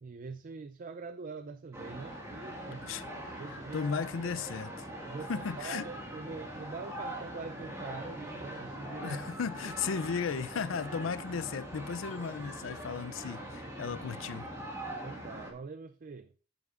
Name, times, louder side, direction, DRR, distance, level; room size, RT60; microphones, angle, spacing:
voice 1, 0.0-3.0 3.3-3.9 5.1-9.2 15.0-16.3, right 4 dB, 45° right, 0.4 m, -44 dB
sound 1, 1.7-15.5, right 1 dB, 15° right, 1.8 m, -42 dB
voice 2, 3.7-4.9 5.3-5.9 9.0-14.5, left 5 dB, 75° left, 0.5 m, -35 dB
9.2 x 9.2 x 2.5 m
head